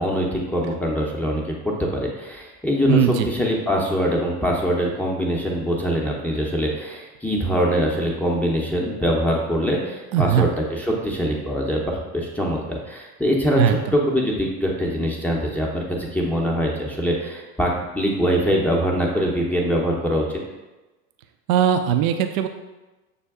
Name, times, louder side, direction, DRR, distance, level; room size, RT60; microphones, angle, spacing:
voice 1, 0.0-20.4, equal, 5° left, -3 dB, 0.6 m, -23 dB
voice 2, 2.9-3.3 10.1-10.4 13.6-13.7 21.5-22.5, right 9 dB, 65° right, 7 dB, 0.5 m, -19 dB
6.7 x 2.2 x 3.4 m, 1.1 s
hypercardioid pair, 95°, 46 cm